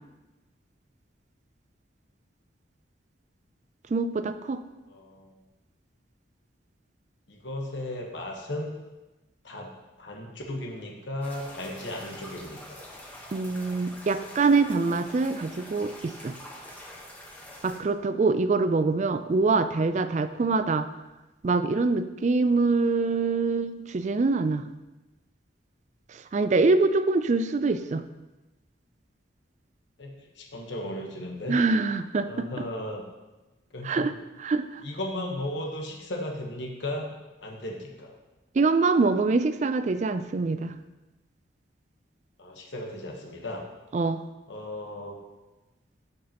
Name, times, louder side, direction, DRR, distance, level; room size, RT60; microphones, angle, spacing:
voice 1, 3.9-4.6 13.3-16.3 17.6-20.9 21.4-24.6 26.1-28.0 31.5-32.5 33.8-34.1 34.4-34.8 38.6-40.8 43.9-44.2, right 3 dB, 35° right, 11 dB, 0.3 m, -24 dB
voice 2, 4.9-5.3 7.3-8.8 9.4-9.7 10.0-12.8 30.0-31.6 32.2-33.0 33.7-34.1 34.8-37.1 37.4-38.1 42.4-43.7 44.5-45.2, left 1 dB, 70° left, 0 dB, 1.2 m, -35 dB
sound 1, 11.2-17.8, left 1 dB, 10° left, 1.1 m, -45 dB
12.5 x 5.3 x 2.9 m, 1.1 s
head